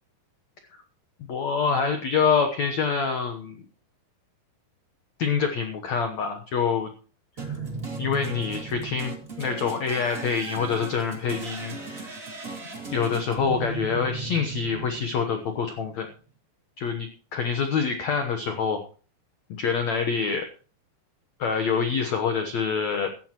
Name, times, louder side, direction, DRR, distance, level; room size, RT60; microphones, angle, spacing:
voice 1, 1.3-3.6 5.2-6.9 7.4-7.5 8.0-12.2 12.9-16.1 16.8-18.8 19.6-20.5 21.4-23.1, left 6 dB, 80° left, 5 dB, 1.6 m, -26 dB
sound 1, 7.4-15.6, right 4 dB, 25° right, 1.9 m, -36 dB
16.0 x 13.5 x 3.0 m, 0.38 s
omnidirectional pair, 5.0 m